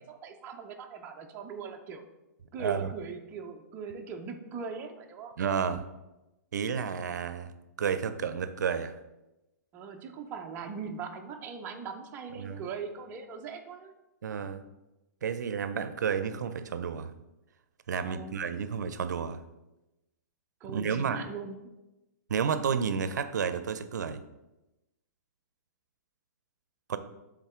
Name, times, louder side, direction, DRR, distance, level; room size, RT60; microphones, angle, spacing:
voice 1, 0.1-2.0 2.5-5.3 9.7-13.9 17.9-18.3 20.6-21.6, right 5 dB, 20° right, 3 dB, 0.5 m, -40 dB
voice 2, 2.6-2.9 5.4-5.9 6.5-7.5 7.8-9.0 12.4-12.7 14.2-14.6 15.2-17.1 17.9-19.4 20.7-21.2 22.3-24.2 26.9-27.0, right 6 dB, 85° right, 11 dB, 0.5 m, -31 dB
7.2 x 3.7 x 3.6 m, 0.99 s
hypercardioid pair, 150°, 9 cm